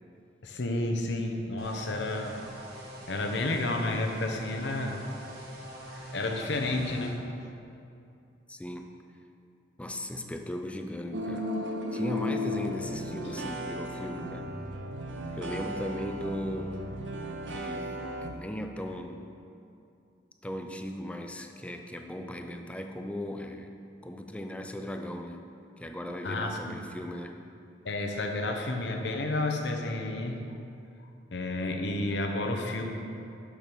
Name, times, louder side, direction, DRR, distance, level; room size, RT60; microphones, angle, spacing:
voice 1, 0.4-2.4 3.1-5.0 6.1-7.2 26.2-26.8 27.8-30.4 31.3-32.8, left 2 dB, 70° left, 3 dB, 0.8 m, -31 dB
sound 1, 1.6-7.1, right 1 dB, 60° right, 1.7 m, -44 dB
voice 2, 8.5-8.9 9.8-11.5 11.9-14.5 15.4-16.9 17.5-19.2 20.4-23.7 24.0-25.4 25.8-27.3, left 1 dB, 5° left, 5 dB, 0.4 m, -37 dB
sound 2, 11.1-18.3, equal, 80° right, 0.8 m, -35 dB
6.5 x 6.3 x 6.1 m, 2.6 s
head